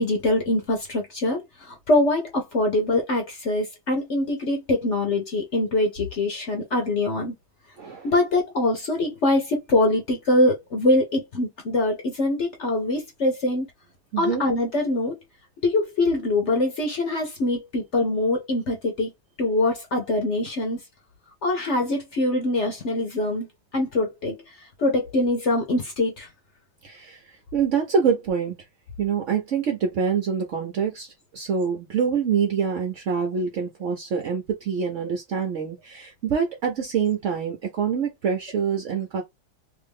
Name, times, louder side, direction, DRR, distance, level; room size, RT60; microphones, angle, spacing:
voice 1, 0.0-7.3 8.0-13.7 14.2-15.2 15.6-19.1 19.4-20.8 21.4-23.5 23.7-24.4 24.8-26.3, left 2 dB, 60° left, 0.7 m, -23 dB
voice 2, 7.8-8.1 14.1-14.4 26.8-27.2 27.5-28.6 29.0-39.2, right 6 dB, 80° right, 0.6 m, -25 dB
3.0 x 2.5 x 3.4 m
omnidirectional pair, 2.2 m